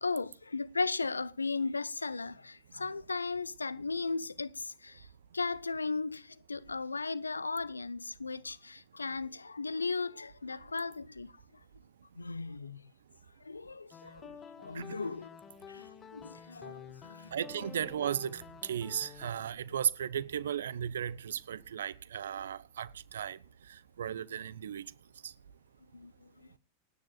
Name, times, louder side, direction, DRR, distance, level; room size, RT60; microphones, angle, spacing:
voice 1, 0.0-5.1 5.3-11.3 12.2-12.9 13.4-15.4 15.7-17.4 25.9-26.5, left 4 dB, 80° left, 0.6 m, -36 dB
sound 1, 13.9-19.3, left 7 dB, 25° left, 1.7 m, -50 dB
voice 2, 17.3-23.4 24.0-24.9 25.2-25.3, right 9 dB, 65° right, 0.7 m, -35 dB
27.0 x 9.9 x 2.3 m
figure-of-eight pair, 90°, 0 cm